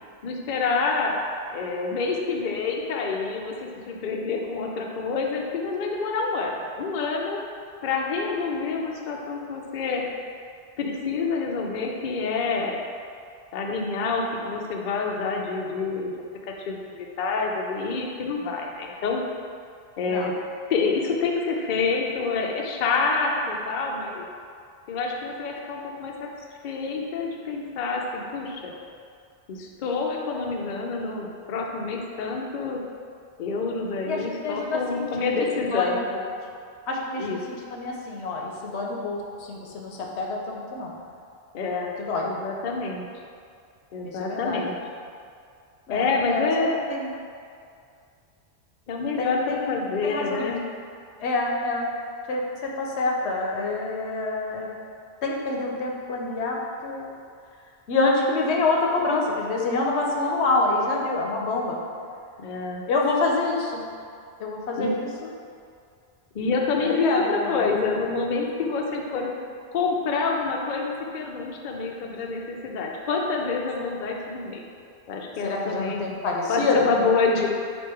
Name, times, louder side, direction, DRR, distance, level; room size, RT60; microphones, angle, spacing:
voice 1, 0.2-1.1 1.5-7.4 7.8-10.0 10.8-12.8 13.5-16.1 16.7-19.2 20.0-20.3 20.7-24.2 24.9-26.1 26.6-28.7 29.5-32.8 33.4-36.0 37.2-37.4 41.5-41.9 42.2-43.0 43.9-44.7 45.9-46.8 48.9-50.6 62.4-62.8 64.8-64.9 66.3-69.3 69.7-74.6 75.1-76.0 76.5-77.5, left 4 dB, 55° left, 0 dB, 0.6 m, -27 dB
voice 2, 34.0-35.3 35.5-36.3 36.9-40.9 42.0-42.3 44.0-44.8 45.9-46.5 46.9-47.1 49.2-50.6 51.2-51.9 52.3-54.7 55.2-56.6 56.8-57.1 57.9-61.8 62.9-63.8 64.4-65.3 66.8-67.7 75.4-76.9, left 3 dB, 80° left, -1 dB, 0.9 m, -27 dB
4.5 x 2.5 x 4.7 m, 2.3 s
omnidirectional pair, 1.1 m